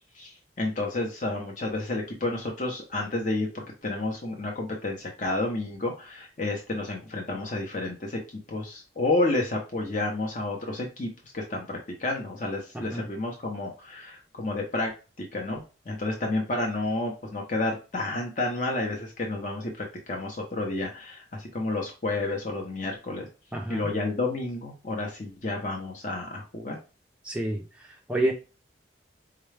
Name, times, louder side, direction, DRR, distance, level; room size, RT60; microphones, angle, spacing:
voice 1, 0.1-8.2 8.5-14.9 15.2-23.3 23.7-26.8, left 2 dB, 40° left, 0.7 m, -30 dB
voice 2, 23.5-23.9 27.2-27.6 28.1-28.3, right 1 dB, 5° right, 0.4 m, -28 dB
4.7 x 2.2 x 3.2 m
head